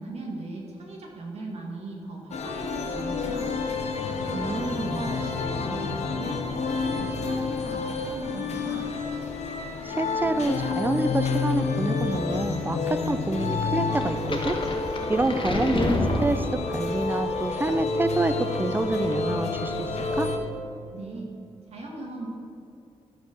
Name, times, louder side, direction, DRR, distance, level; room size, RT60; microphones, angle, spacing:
voice 1, 0.0-3.5 4.2-6.4 6.7-8.9 20.9-21.3 21.7-22.3, right 2 dB, 65° right, -1 dB, 2.1 m, -38 dB
sound 1, 2.3-20.4, left 4 dB, 75° left, 1.0 m, -29 dB
voice 2, 4.3-5.2 9.8-14.6 15.1-20.3, right 2 dB, 20° right, 10 dB, 0.5 m, -27 dB
sound 2, 14.0-16.9, left 2 dB, 50° left, 1.4 m, -28 dB
12.5 x 4.3 x 6.7 m, 2.6 s
cardioid pair, 95°, 11 cm